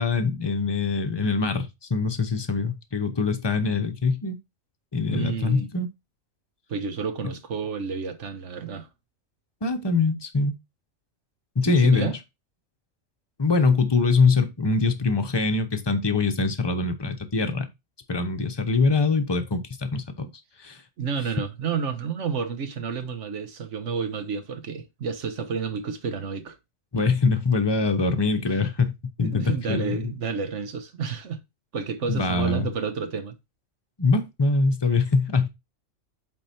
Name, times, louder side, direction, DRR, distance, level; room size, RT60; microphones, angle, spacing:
voice 1, 0.0-4.4 4.9-5.9 9.6-10.5 11.6-12.1 13.4-17.7 18.1-20.3 20.6-20.8 26.9-30.1 32.1-32.7 34.0-35.5, left 4 dB, 25° left, 0.8 m, -23 dB
voice 2, 5.1-5.7 6.7-8.9 11.6-12.2 21.0-26.6 29.2-31.4 31.7-33.4, right 6 dB, 65° right, 1.4 m, -30 dB
8.1 x 3.8 x 4.3 m
omnidirectional pair, 1.3 m